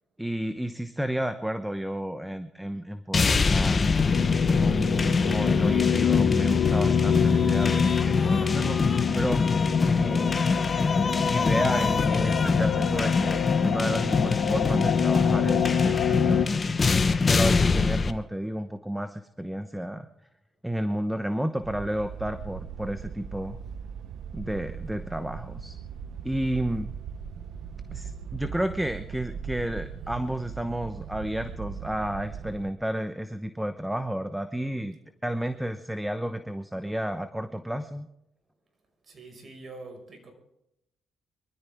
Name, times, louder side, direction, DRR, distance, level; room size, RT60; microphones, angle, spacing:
voice 1, 0.2-3.9 4.4-9.4 9.8-10.5 11.2-20.1 20.6-23.6 24.3-25.8 26.2-26.9 27.9-35.0 35.2-38.1, right 1 dB, 5° right, 10 dB, 1.0 m, -31 dB
sound 1, 3.1-18.1, left 4 dB, 35° left, 1.1 m, -24 dB
sound 2, 4.1-16.5, left 9 dB, 80° left, 1.2 m, -27 dB
sound 3, 21.6-32.7, right 7 dB, 75° right, 0.9 m, -39 dB
voice 2, 39.0-40.3, right 2 dB, 40° right, 4 dB, 5.4 m, -44 dB
24.0 x 13.5 x 3.6 m, 0.82 s
cardioid pair, 90°, 0 cm